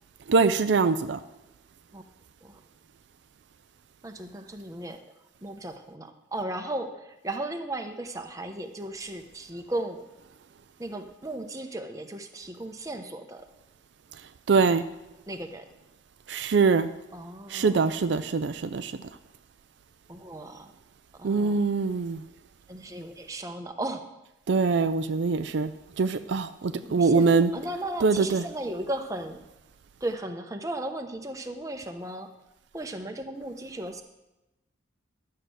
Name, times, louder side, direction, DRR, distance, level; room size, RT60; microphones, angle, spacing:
voice 1, 0.3-1.2 14.5-14.8 16.3-16.9 17.5-18.9 21.2-22.2 24.5-25.7 26.0-27.5 28.0-28.5, right 4 dB, 65° right, 0.4 m, -23 dB
voice 2, 4.0-5.0 5.4-10.1 10.8-13.5 15.3-15.7 17.1-17.8 20.1-20.7 21.2-21.7 22.7-24.0 26.7-29.4 30.0-32.3 32.7-34.0, right 1 dB, 15° right, 0.9 m, -36 dB
12.0 x 6.6 x 7.8 m
head